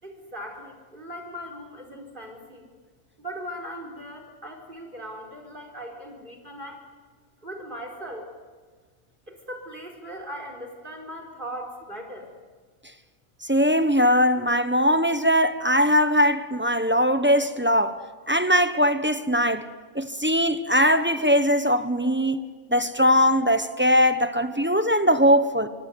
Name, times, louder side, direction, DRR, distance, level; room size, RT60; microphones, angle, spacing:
voice 1, 0.0-2.6 3.2-6.8 7.4-8.3 9.3-12.3, equal, 35° right, 4.8 m, -39 dB
voice 2, 13.4-19.7 19.9-25.7, equal, 10° right, 0.9 m, -21 dB
25.0 x 24.5 x 9.5 m
omnidirectional pair, 1.4 m